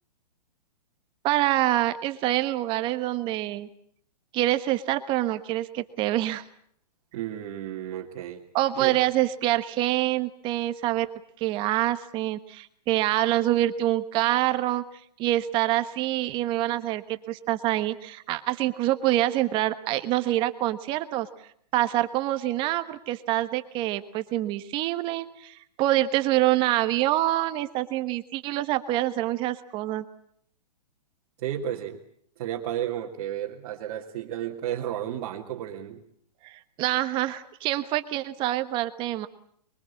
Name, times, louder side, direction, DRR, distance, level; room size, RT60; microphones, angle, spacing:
voice 1, 1.2-3.7 4.3-6.4 8.5-11.1 11.4-14.8 15.2-21.3 21.7-30.0 36.4-39.3, right 15 dB, 25° right, 10 dB, 1.3 m, -26 dB
voice 2, 7.1-8.4 8.8-8.9 31.4-32.0 32.4-36.0, right 11 dB, 40° right, -2 dB, 2.4 m, -32 dB
24.5 x 23.0 x 8.5 m, 0.65 s
hypercardioid pair, 155°, 21 cm